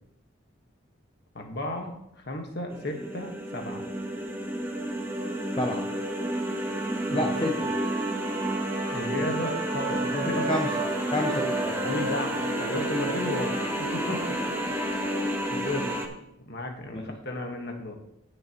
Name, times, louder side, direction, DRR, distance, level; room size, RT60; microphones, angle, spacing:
voice 1, 1.3-3.8 7.1-7.5 8.9-10.5 11.8-14.2 15.5-15.9 16.5-18.0, left 1 dB, 55° left, 3 dB, 1.5 m, -33 dB
sound 1, 2.7-16.1, right 1 dB, 10° right, 1.0 m, -30 dB
Wind instrument woodwind instrument, 7.0-15.3, right 2 dB, 50° right, 1.8 m, -37 dB
voice 2, 7.1-7.5 10.5-10.7 11.1-11.8 14.7-15.0 16.9-17.1, left 2 dB, 25° left, 1 dB, 0.8 m, -29 dB
15.5 x 6.7 x 3.0 m, 0.78 s
head